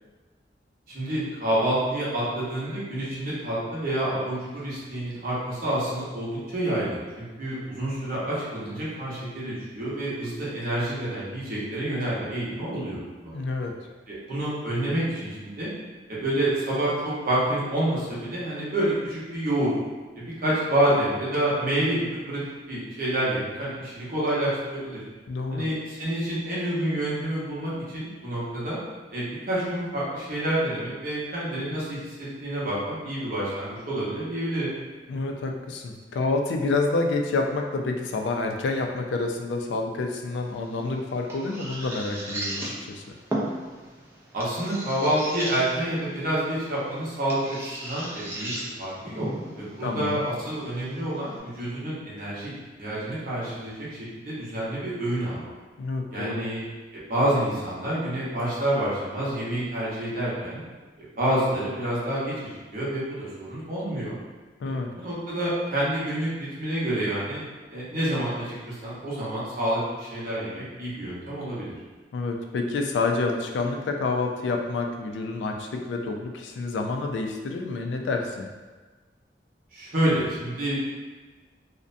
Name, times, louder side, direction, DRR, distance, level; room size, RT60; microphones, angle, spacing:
voice 1, 0.9-13.3 14.1-15.7 16.1-19.7 20.2-22.4 22.7-25.0 25.5-28.8 29.1-34.8 44.3-48.5 48.8-49.3 49.6-52.5 52.8-53.9 54.2-55.5 56.1-56.6 56.9-60.6 61.2-64.2 64.6-67.4 67.7-71.7 79.7-80.8, right 1 dB, 50° right, -8 dB, 0.8 m, -28 dB
voice 2, 13.3-13.7 25.3-25.7 35.1-43.0 49.8-50.2 55.8-56.5 64.6-64.9 72.1-78.5, left 3 dB, 80° left, 3 dB, 0.3 m, -28 dB
sound 1, 40.4-51.4, right 1 dB, 15° right, 0.4 m, -37 dB
2.5 x 2.1 x 2.5 m, 1.3 s
head